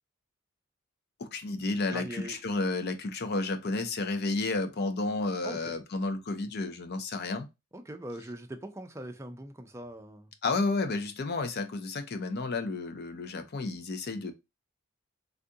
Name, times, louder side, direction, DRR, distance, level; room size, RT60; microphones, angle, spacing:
voice 1, 1.2-7.5 10.4-14.3, left 3 dB, 50° left, 0.5 m, -31 dB
voice 2, 1.9-2.4 5.4-5.8 7.7-10.3, right 1 dB, 15° right, 0.4 m, -41 dB
3.4 x 2.5 x 2.6 m
head